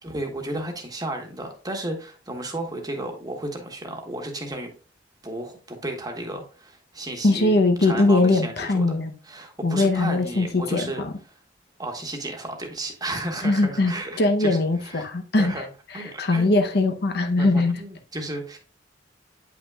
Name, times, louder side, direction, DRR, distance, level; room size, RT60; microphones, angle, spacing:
voice 1, 0.0-4.7 5.2-7.5 7.8-8.8 9.2-11.0 11.8-15.0 15.4-15.7 15.9-16.5 17.4-18.6, right 1 dB, 20° right, 3 dB, 1.2 m, -33 dB
voice 2, 7.2-9.1 9.6-11.1 13.4-15.6 15.9-17.8, left 2 dB, 60° left, 6 dB, 0.8 m, -21 dB
8.7 x 5.8 x 2.4 m, 0.37 s
head